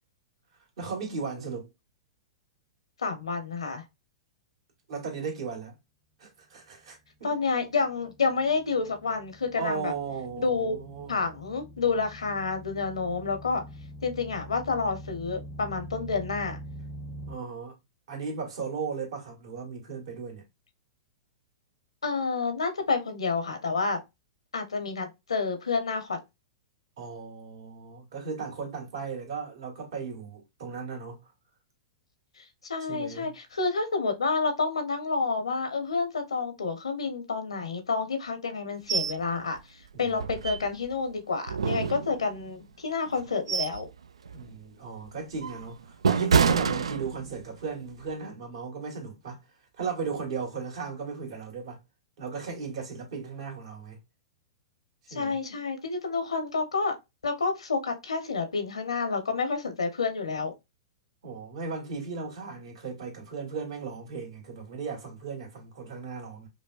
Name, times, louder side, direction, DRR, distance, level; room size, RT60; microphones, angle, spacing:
voice 1, 0.8-1.7 4.9-5.7 6.2-7.3 9.6-11.2 17.3-17.8 18.1-20.4 27.0-31.2 32.9-33.3 39.9-40.2 44.3-49.4 49.8-51.8 52.2-54.0 55.1-55.4 61.2-66.5, right 5 dB, 65° right, 1.8 m, -36 dB
voice 2, 3.0-3.8 7.2-9.9 10.4-10.8 11.1-13.6 14.0-16.6 22.0-24.0 24.5-26.2 32.4-43.9 55.1-57.0 57.2-60.5, left 4 dB, 90° left, 1.0 m, -29 dB
sound 1, 7.7-17.4, equal, 15° right, 0.7 m, -44 dB
sound 2, 38.9-39.2 39.6-39.7 40.1-41.0 41.5-42.5 43.1-43.9 44.3-44.5 45.1-47.5 47.9-48.1, right 6 dB, 85° right, 0.3 m, -27 dB
5.1 x 2.3 x 2.4 m
hypercardioid pair, 115°, 3 cm